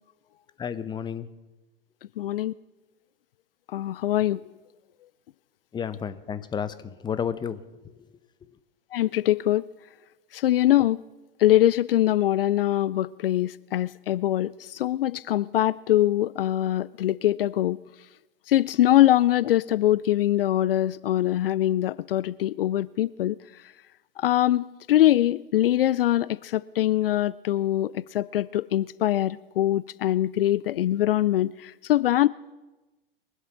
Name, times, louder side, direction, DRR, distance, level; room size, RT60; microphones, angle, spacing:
voice 1, 0.6-1.3 5.7-7.9, left 7 dB, 15° left, 0.8 m, -32 dB
voice 2, 2.2-2.5 3.7-4.4 8.9-9.6 10.3-11.0 11.4-17.8 18.5-23.4 24.2-32.3, left 13 dB, 70° left, 0.4 m, -23 dB
22.5 x 8.1 x 5.9 m
figure-of-eight pair, 95°, 29 cm